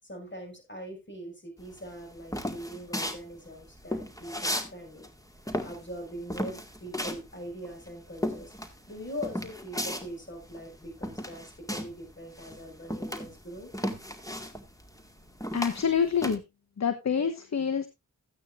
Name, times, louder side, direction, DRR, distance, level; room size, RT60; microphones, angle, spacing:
voice 1, 0.0-5.1 5.6-13.7, equal, 35° left, 6.4 m, -42 dB
sound 1, 1.7-4.7 5.0-12.1 12.3-16.4, equal, 10° left, 2.2 m, -35 dB
voice 2, 15.5-16.4 16.8-17.9, left 7 dB, 60° left, 1.1 m, -27 dB
14.0 x 9.2 x 2.5 m
cardioid pair, 45°, 31 cm